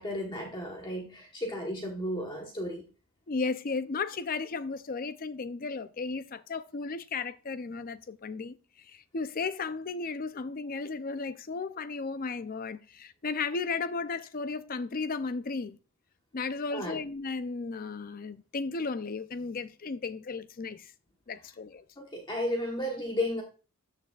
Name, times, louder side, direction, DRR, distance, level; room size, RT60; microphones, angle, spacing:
voice 1, 0.0-2.8 16.7-17.0 22.0-23.4, left 1 dB, 20° left, 1.2 m, -33 dB
voice 2, 3.3-8.6 8.9-15.8 16.3-20.9 21.3-21.8, left 4 dB, 40° left, 0.5 m, -34 dB
13.5 x 6.6 x 2.4 m
head